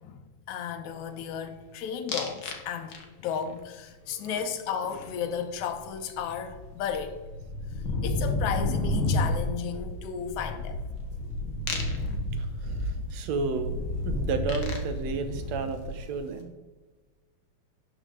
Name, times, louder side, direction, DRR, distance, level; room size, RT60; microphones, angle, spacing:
voice 1, 0.0-7.2 8.0-10.8, left 7 dB, 80° left, 2.2 m, -34 dB
sound 1, 2.1-2.6 2.9-3.4 5.8-5.9 6.2-16.2, left 2 dB, 55° left, 1.8 m, -31 dB
voice 2, 4.1-4.4 12.4-13.8 14.1-16.5, right 5 dB, 75° right, 1.8 m, -32 dB
11.5 x 6.5 x 3.7 m
omnidirectional pair, 3.3 m